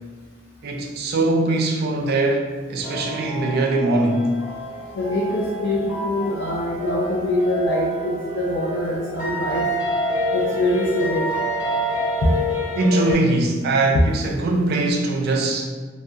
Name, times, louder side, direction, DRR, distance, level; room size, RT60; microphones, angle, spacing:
voice 1, 0.6-4.3 12.8-15.7, right 2 dB, 55° right, 0.4 m, -21 dB
sound 1, 2.8-13.1, left 1 dB, 10° right, 0.7 m, -27 dB
voice 2, 4.9-9.6 10.3-11.3 12.2-12.3 13.9-14.0, left 1 dB, 60° left, 0.4 m, -23 dB
2.3 x 2.1 x 2.6 m
head